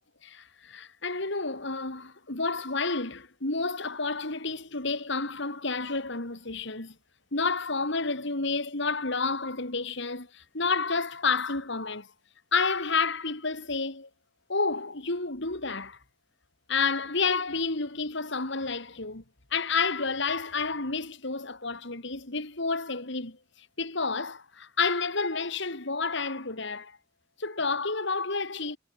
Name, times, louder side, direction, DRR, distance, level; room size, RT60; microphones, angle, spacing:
voice 1, 0.2-6.9 7.3-12.1 12.5-14.1 14.5-16.0 16.7-19.2 19.5-23.4 23.8-27.0 27.4-28.8, left 4 dB, 60° left, 2.9 m, -30 dB
head